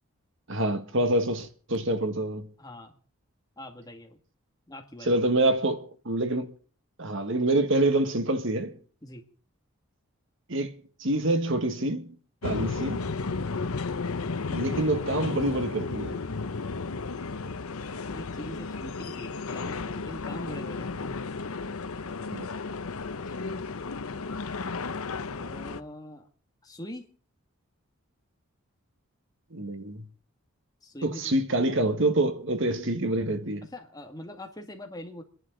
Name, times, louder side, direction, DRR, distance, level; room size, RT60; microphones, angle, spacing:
voice 1, 0.5-2.5 5.1-6.5 7.0-8.8 10.5-12.2 12.4-13.0 14.5-16.2 22.3-22.5 29.5-30.1 31.0-33.7, right 1 dB, 55° right, 1.8 m, -26 dB
voice 2, 2.6-3.0 3.6-4.2 4.7-5.1 9.0-9.2 18.1-21.2 23.2-23.6 25.3-26.3 26.6-27.1 30.8-31.3 33.7-35.2, left 1 dB, 15° left, 2.1 m, -43 dB
sound 1, 12.4-25.8, left 4 dB, 80° left, 0.8 m, -33 dB
29.0 x 11.0 x 4.0 m
head